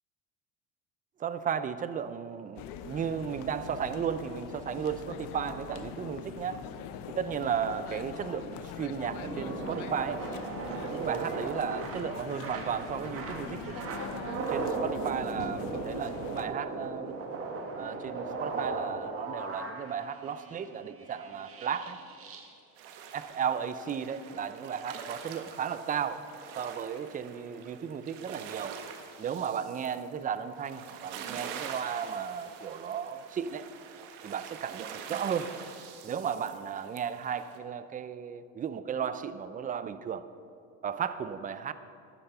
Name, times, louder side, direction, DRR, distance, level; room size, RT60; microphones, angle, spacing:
voice 1, 1.2-6.6 7.1-10.3 10.8-13.7 14.5-17.1 17.7-22.0 23.1-26.3 26.6-28.8 29.2-33.6 34.2-35.5 36.0-40.3 40.8-41.7, right 7 dB, 25° right, 12 dB, 0.5 m, -34 dB
sound 1, 2.6-16.5, left 9 dB, 65° left, 0.8 m, -42 dB
sound 2, 9.1-22.5 23.1-23.2, right 4 dB, 40° right, 1.6 m, -37 dB
sound 3, 22.8-37.6, right 7 dB, 85° right, 1.3 m, -45 dB
11.5 x 10.5 x 5.6 m, 2.5 s
cardioid pair, 125°, 36 cm